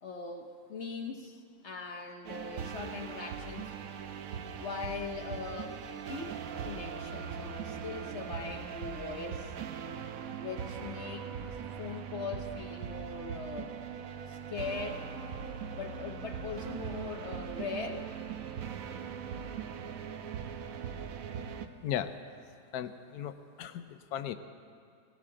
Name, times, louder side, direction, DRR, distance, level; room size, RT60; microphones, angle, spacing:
voice 1, 0.0-3.7 4.6-6.4 6.6-9.5 10.4-11.3 11.8-13.7 14.3-15.1 15.7-18.1, left 4 dB, 50° left, 4 dB, 1.0 m, -41 dB
sound 1, 2.2-21.7, right 7 dB, 65° right, 1.0 m, -40 dB
voice 2, 21.8-22.1 22.7-24.3, left 10 dB, 70° left, 10 dB, 1.2 m, -36 dB
19.0 x 18.5 x 3.8 m, 2.3 s
omnidirectional pair, 1.8 m